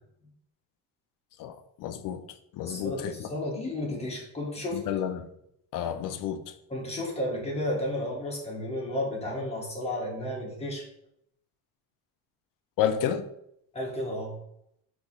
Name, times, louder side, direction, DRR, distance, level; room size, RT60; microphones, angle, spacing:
voice 1, 1.4-2.2 2.5-3.3 4.7-5.2 5.7-6.4 12.8-13.3, left 9 dB, 50° left, 0.5 m, -30 dB
voice 2, 2.6-4.8 6.7-10.8 13.7-14.3, left 1 dB, 15° left, 1.4 m, -32 dB
3.6 x 3.0 x 4.1 m
cardioid pair, 130°, 41 cm